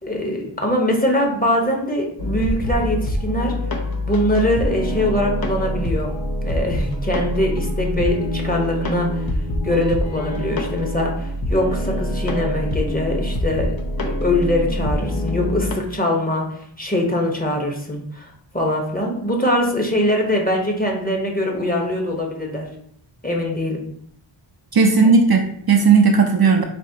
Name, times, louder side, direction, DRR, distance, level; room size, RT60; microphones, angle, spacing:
voice 1, 0.0-3.5 4.1-6.1 6.4-9.2 9.6-13.7 14.0-16.5 16.8-18.3 18.5-22.7 23.2-23.8, left 1 dB, 20° left, 0 dB, 1.0 m, -22 dB
sound 1, 2.2-15.7, left 1 dB, 45° left, 0.7 m, -25 dB
voice 2, 24.7-26.6, right 5 dB, 50° right, 2 dB, 0.6 m, -15 dB
4.3 x 2.8 x 2.8 m, 0.67 s
wide cardioid pair, 45°, 48 cm